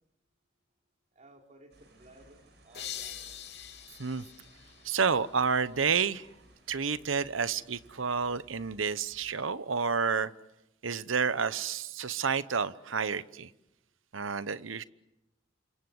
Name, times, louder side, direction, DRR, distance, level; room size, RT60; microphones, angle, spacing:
voice 1, 1.1-3.3, right 1 dB, 40° right, 3 dB, 3.3 m, -57 dB
sound 1, 1.7-9.3, right 1 dB, 60° right, 7.2 m, -60 dB
sound 2, 2.7-5.5, left 10 dB, 60° left, 3.3 m, -44 dB
voice 2, 4.8-6.3 6.7-10.3 10.8-13.5 14.1-14.8, right 5 dB, 85° right, 16 dB, 1.0 m, -30 dB
29.0 x 25.0 x 7.9 m, 0.92 s
head